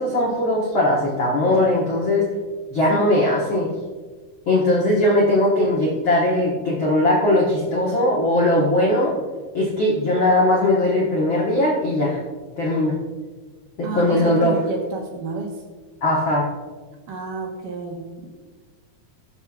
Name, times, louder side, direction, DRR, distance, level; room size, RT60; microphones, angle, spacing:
voice 1, 0.0-2.3 2.7-3.7 4.5-9.2 9.5-12.2 12.6-13.0 13.8-14.6 16.0-16.5, left 1 dB, 65° left, -4 dB, 1.2 m, -19 dB
voice 2, 2.9-3.2 13.8-15.6 17.1-18.3, right 4 dB, 65° right, 0 dB, 2.5 m, -30 dB
20.5 x 6.9 x 2.4 m, 1.4 s
omnidirectional pair, 4.5 m